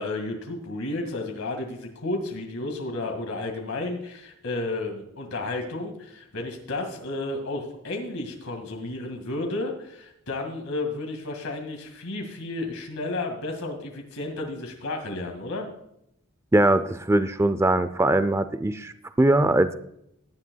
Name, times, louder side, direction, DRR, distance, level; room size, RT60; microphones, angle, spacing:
voice 1, 0.0-15.7, left 2 dB, 85° left, 2 dB, 1.9 m, -32 dB
voice 2, 16.5-19.8, right 1 dB, 15° right, 12 dB, 0.4 m, -21 dB
17.0 x 11.0 x 2.2 m, 0.76 s
head